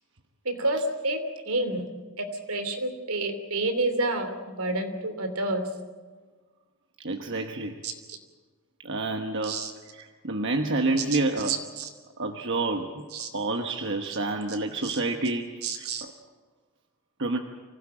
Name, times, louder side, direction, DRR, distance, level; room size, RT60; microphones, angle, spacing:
voice 1, 0.4-1.2 1.5-1.8 2.2-5.7 7.8-8.2 9.4-9.7 11.5-11.9 13.1-13.3 14.8-15.0 15.6-16.0, right 2 dB, 75° right, 7 dB, 2.9 m, -29 dB
voice 2, 7.0-7.8 8.8-9.6 9.9-11.5 12.2-13.0 13.3-16.1 17.2-17.4, right 2 dB, 55° right, 4 dB, 1.3 m, -28 dB
25.0 x 16.0 x 8.8 m, 1.4 s
head